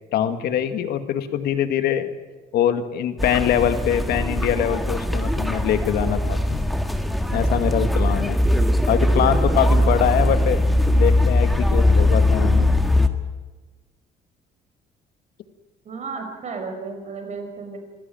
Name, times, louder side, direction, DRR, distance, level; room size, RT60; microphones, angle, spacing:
voice 1, 0.1-2.1 2.5-6.6 7.3-8.4 8.9-10.6 10.9-12.7, left 10 dB, 70° left, 9 dB, 2.0 m, -23 dB
sound 1, 3.2-13.1, left 1 dB, ahead, 1.8 m, -20 dB
voice 2, 15.8-17.8, right 4 dB, 45° right, 5 dB, 5.5 m, -33 dB
25.5 x 16.0 x 9.2 m, 1.3 s
cardioid pair, 110°, 17 cm